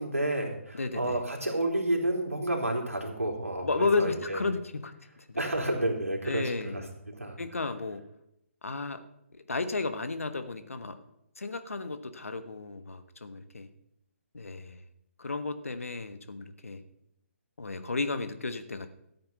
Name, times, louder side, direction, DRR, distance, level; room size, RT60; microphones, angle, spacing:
voice 1, 0.0-4.4 5.3-7.4, right 1 dB, 90° right, 0 dB, 3.5 m, -30 dB
voice 2, 0.7-1.2 3.6-4.9 5.3-5.4 6.2-6.9 7.4-8.0 8.6-9.0 9.3-11.0 11.4-13.7 14.3-14.8 15.2-16.8 17.6-18.9, left 3 dB, 75° left, 9 dB, 1.3 m, -33 dB
14.0 x 8.7 x 5.6 m, 0.82 s
figure-of-eight pair, 135°, 8 cm